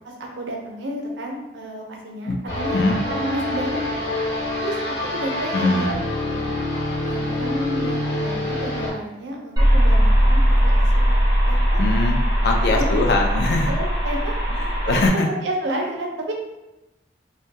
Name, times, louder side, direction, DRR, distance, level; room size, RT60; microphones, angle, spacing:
voice 1, 0.0-2.8 3.1-4.2 4.6-5.9 6.2-6.5 7.0-11.8 12.7-13.1 13.7-14.3 14.9-15.0 15.3-16.3, right 1 dB, 85° right, 0 dB, 0.5 m, -31 dB
sound 1, 2.5-8.9, left 1 dB, 90° left, 0.9 m, -26 dB
voice 2, 5.5-5.9 11.8-13.7 14.6-15.3, left 2 dB, 60° left, 2 dB, 0.4 m, -22 dB
sound 2, 9.6-15.1, equal, 25° right, 0.6 m, -19 dB
2.2 x 2.2 x 2.8 m, 0.99 s
head